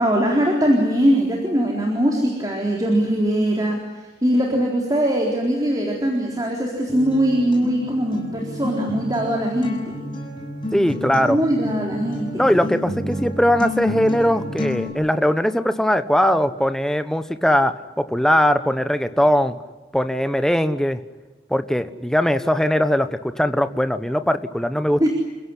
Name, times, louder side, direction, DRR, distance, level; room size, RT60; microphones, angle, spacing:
voice 1, 0.0-3.8 4.2-9.8 11.3-12.4 25.0-25.1, equal, 20° right, -1 dB, 3.9 m, -21 dB
Acoustic guitar, 6.9-14.9, left 1 dB, 25° left, 7.4 m, -30 dB
voice 2, 10.7-11.4 12.4-19.6 19.9-21.0 21.5-25.1, equal, 5° left, 10 dB, 1.1 m, -20 dB
29.5 x 16.5 x 9.9 m, 1.2 s
head